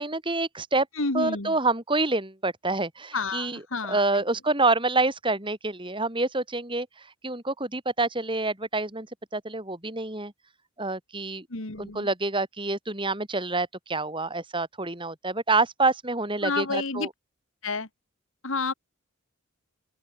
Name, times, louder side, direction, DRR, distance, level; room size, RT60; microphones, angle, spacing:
voice 1, 0.0-0.9 1.1-3.6 3.9-9.1 9.3-10.3 10.8-11.5 11.8-17.1, right 3 dB, 25° right, 4.7 m, -27 dB
voice 2, 1.0-1.5 3.1-4.0 11.5-12.1 16.4-17.1 17.6-17.9 18.4-18.7, left 3 dB, 65° left, 2.3 m, -29 dB
open air
head